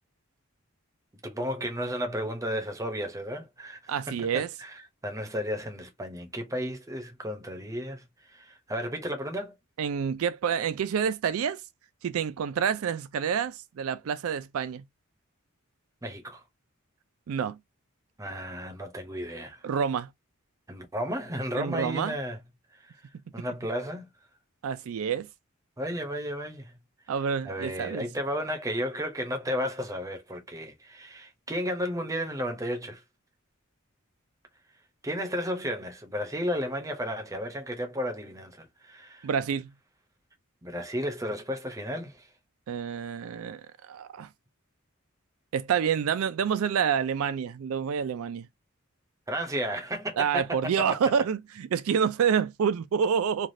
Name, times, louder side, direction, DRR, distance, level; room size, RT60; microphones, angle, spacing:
voice 1, 1.2-4.3 4.6-9.5 16.0-16.4 18.2-19.6 20.7-22.4 22.7-23.0 23.3-24.1 25.8-26.7 27.4-33.0 35.0-39.3 40.6-42.3 49.3-50.9, equal, 15° right, 0.7 m, -33 dB
voice 2, 3.9-4.5 9.8-11.6 12.0-14.8 17.3-17.6 19.6-20.1 21.6-22.1 24.6-25.3 27.1-28.1 39.2-39.7 42.7-44.3 45.5-48.5 50.2-53.5, right 7 dB, 75° right, 0.4 m, -28 dB
3.3 x 2.3 x 2.6 m
head